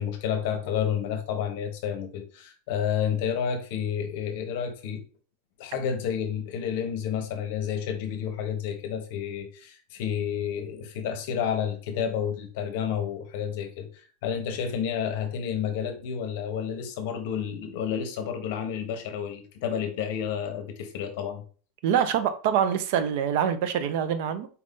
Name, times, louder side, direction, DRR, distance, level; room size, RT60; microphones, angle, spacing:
voice 1, 0.0-5.0 5.6-21.4, left 8 dB, 55° left, 0.8 m, -30 dB
voice 2, 21.8-24.5, right 8 dB, 55° right, 0.5 m, -25 dB
4.2 x 2.6 x 3.5 m
supercardioid pair, 170°, 0 cm